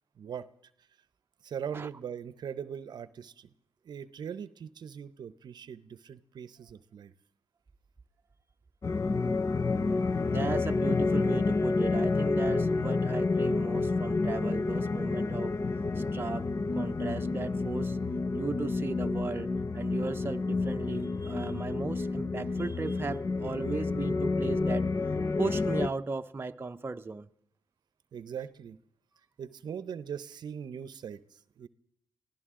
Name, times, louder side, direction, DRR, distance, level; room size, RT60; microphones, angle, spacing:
voice 1, 0.2-0.5 1.4-3.5 3.8-7.1 28.1-28.8 29.4-31.2 31.6-31.7, right 8 dB, 60° right, 0.8 m, -40 dB
sound 1, 8.8-25.9, left 3 dB, 35° left, 0.7 m, -29 dB
voice 2, 10.2-15.6 16.0-16.5 16.7-18.0 18.3-24.9 25.4-27.3, right 4 dB, 25° right, 0.7 m, -36 dB
23.5 x 16.0 x 3.7 m
supercardioid pair, 60°, 8 cm